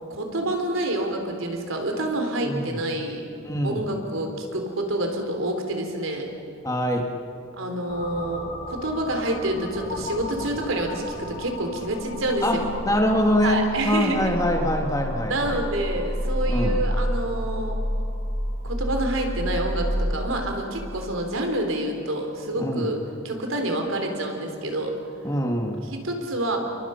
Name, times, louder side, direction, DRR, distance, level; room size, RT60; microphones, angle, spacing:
voice 1, 0.1-3.2 3.6-6.3 7.6-12.6 13.4-14.3 15.3-17.8 18.6-24.9 25.8-26.6, right 1 dB, 80° right, 3 dB, 3.8 m, -28 dB
voice 2, 3.4-3.8 6.6-7.1 12.4-12.6 12.8-15.6 16.5-16.8 22.6-22.9 25.2-25.9, equal, 15° left, 2 dB, 2.0 m, -24 dB
sound 1, 7.9-20.2, equal, 35° left, 6.9 m, -30 dB
29.0 x 23.5 x 5.8 m, 2.5 s
head